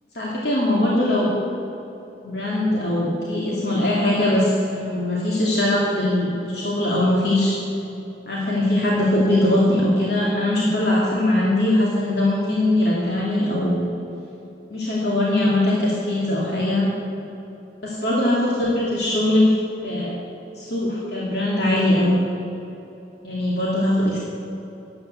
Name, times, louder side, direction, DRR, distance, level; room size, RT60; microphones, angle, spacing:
voice 1, 0.1-1.3 2.2-7.5 8.3-13.9 14.7-16.9 17.8-19.5 19.8-20.1 20.6-22.2 23.2-24.2, left 1 dB, 65° left, -5 dB, 2.5 m, -21 dB
12.5 x 9.6 x 8.1 m, 2.9 s
head